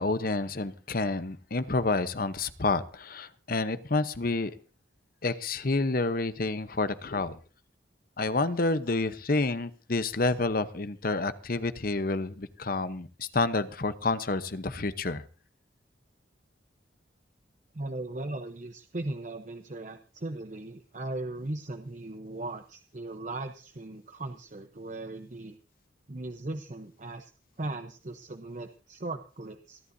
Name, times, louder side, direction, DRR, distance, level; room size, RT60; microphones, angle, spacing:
voice 1, 0.0-4.5 5.2-7.4 8.2-15.2, left 3 dB, 50° left, 13 dB, 0.9 m, -29 dB
voice 2, 17.7-25.6 26.1-27.3 27.6-29.9, right 2 dB, 40° right, 7 dB, 0.8 m, -38 dB
28.0 x 11.5 x 2.7 m, 0.36 s
head